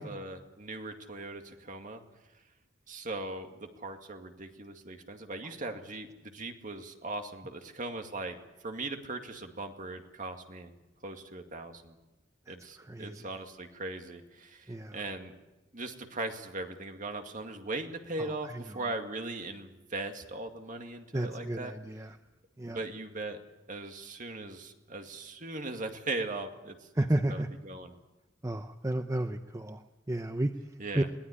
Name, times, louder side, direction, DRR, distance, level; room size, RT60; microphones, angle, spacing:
voice 1, 0.0-2.0 2.9-8.4 8.6-10.7 11.0-12.0 12.5-15.4 15.7-21.7 22.6-23.4 23.7-26.9 27.3-27.9 30.8-31.1, right 2 dB, 45° right, 5 dB, 2.2 m, -39 dB
voice 2, 12.5-13.3 14.7-15.0 18.2-18.8 21.1-22.2 22.6-22.8 26.9-27.5 28.4-31.0, right 1 dB, 15° right, 8 dB, 0.7 m, -33 dB
22.5 x 17.5 x 9.9 m, 1.0 s
head